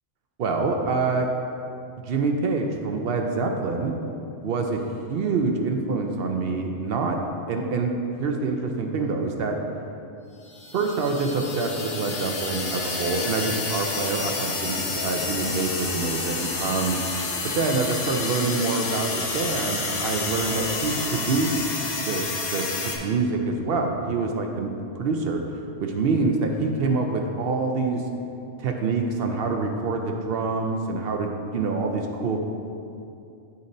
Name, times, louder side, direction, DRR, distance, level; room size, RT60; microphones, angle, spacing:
voice 1, 0.4-1.3 2.0-3.9 4.4-4.8 5.1-7.2 7.5-7.9 8.2-9.6 10.7-17.0 17.4-21.6 22.0-24.7 25.0-25.4 25.8-28.0 28.6-32.4, right 3 dB, 65° right, 3 dB, 0.7 m, -26 dB
sound 1, 10.5-23.0, left 3 dB, 65° left, 1.0 m, -29 dB
10.5 x 4.0 x 2.6 m, 2.6 s
omnidirectional pair, 1.2 m